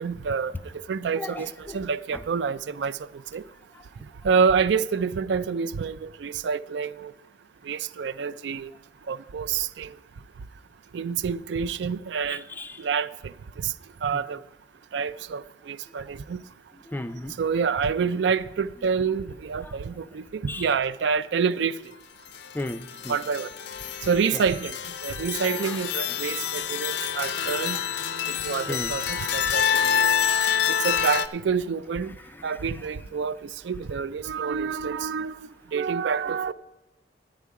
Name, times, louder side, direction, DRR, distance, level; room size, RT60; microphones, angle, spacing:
voice 1, 0.0-3.0 3.3-3.4 4.2-7.1 7.6-8.7 9.1-9.9 10.9-12.4 12.8-13.7 14.0-14.4 14.9-16.4 17.4-21.8 23.1-23.5 24.0-24.7 25.0-27.8 28.3-30.1 30.7-32.1 32.4-36.5, right 6 dB, 70° right, 0.4 m, -27 dB
voice 2, 1.2-1.8 12.3-12.8 14.1-14.2 16.9-17.3 19.6-19.7 20.5-20.7 22.5-23.2 25.6-25.8 28.7-28.9 32.3-32.4, left 2 dB, 10° left, 0.3 m, -35 dB
sound 1, 22.3-31.3, left 8 dB, 65° left, 0.5 m, -27 dB
12.0 x 9.1 x 4.7 m
head